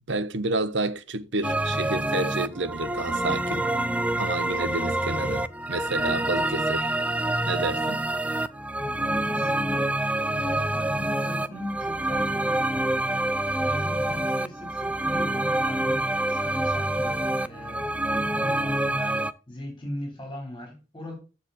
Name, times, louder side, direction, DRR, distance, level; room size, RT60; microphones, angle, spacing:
voice 1, 0.0-3.7 4.2-6.9 7.4-8.1, right 2 dB, 75° right, 1.1 m, -30 dB
sound 1, 1.4-19.3, right 1 dB, 5° right, 0.5 m, -27 dB
voice 2, 8.5-10.0 10.3-17.9 18.4-21.2, left 1 dB, 20° left, 3.9 m, -39 dB
14.5 x 4.9 x 4.2 m
head